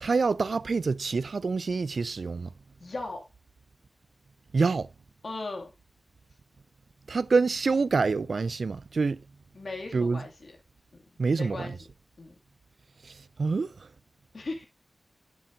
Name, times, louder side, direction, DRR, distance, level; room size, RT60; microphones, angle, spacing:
voice 1, 0.0-2.5 4.5-4.9 7.1-9.2 9.9-10.2 11.2-11.7 13.0-13.9, right 4 dB, 70° right, 0.4 m, -26 dB
voice 2, 2.8-3.2 5.2-5.7 9.5-10.5 10.9-11.0 11.3-11.8 12.2-12.4 14.3-14.6, left 2 dB, 65° left, 2.4 m, -37 dB
11.5 x 7.1 x 2.7 m
wide cardioid pair, 85°, 0 cm